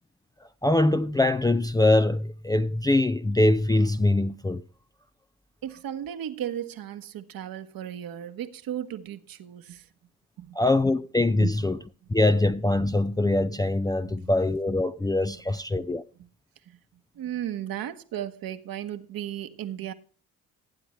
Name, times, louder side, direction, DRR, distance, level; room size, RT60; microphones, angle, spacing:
voice 1, 0.6-4.6 10.6-11.8 12.1-16.0, left 2 dB, 10° left, 0.5 m, -23 dB
voice 2, 5.6-9.9 10.4-10.6 11.4-11.6 12.0-12.1 14.0-14.2 16.2-16.3 16.6-16.8 17.1-19.9, right 11 dB, 55° right, 1.3 m, -35 dB
15.0 x 9.9 x 3.2 m
figure-of-eight pair, 45°, 43 cm